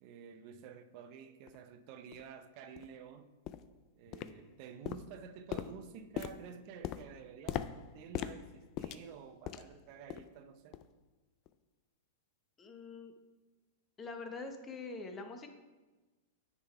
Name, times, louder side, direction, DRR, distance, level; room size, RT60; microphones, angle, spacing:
voice 1, 0.0-3.4 3.9-10.8, right 7 dB, 50° right, 0.6 m, -51 dB
sound 1, 1.5-1.6 2.1-2.2 2.8-2.9 3.5-3.8 4.1-4.6 4.9-9.8 10.1-10.4 10.7-10.9 11.5-11.6, left 11 dB, 40° left, 0.4 m, -42 dB
voice 2, 12.6-13.1 14.0-15.5, left 3 dB, 20° left, 0.9 m, -44 dB
9.6 x 3.8 x 4.5 m
hypercardioid pair, 115°, 0 cm